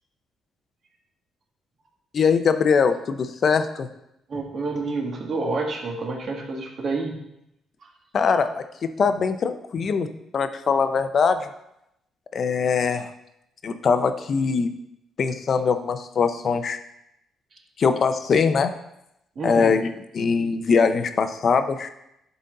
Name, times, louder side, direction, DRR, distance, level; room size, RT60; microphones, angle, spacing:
voice 1, 2.1-3.9 8.1-10.1 10.3-11.5 12.3-13.1 13.6-14.7 15.2-16.8 17.8-18.7 19.4-21.9, left 5 dB, 50° left, 9 dB, 0.6 m, -22 dB
voice 2, 4.3-7.2 19.3-19.8, right 3 dB, 50° right, 1 dB, 1.6 m, -28 dB
11.0 x 4.0 x 3.9 m, 0.83 s
cardioid pair, 90°, 0 cm